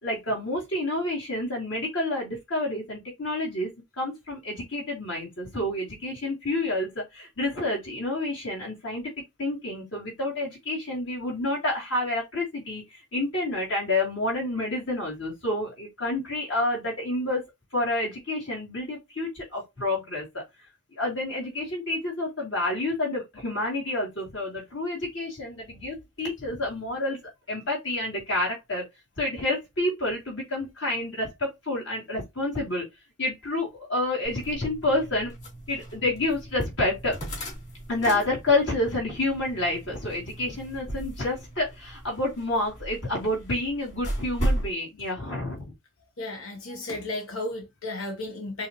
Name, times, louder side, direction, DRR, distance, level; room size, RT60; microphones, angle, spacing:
voice 1, 0.0-3.7 4.0-9.1 9.4-17.4 17.7-20.4 20.9-27.2 27.5-28.8 29.2-32.9 33.2-35.3 35.7-37.2 37.9-45.7, left 2 dB, 60° left, 2.9 m, -29 dB
sound 1, 34.2-44.7, right 1 dB, 35° left, 2.8 m, -36 dB
voice 2, 46.2-48.7, left 2 dB, 80° left, 1.2 m, -34 dB
5.4 x 3.2 x 3.1 m
head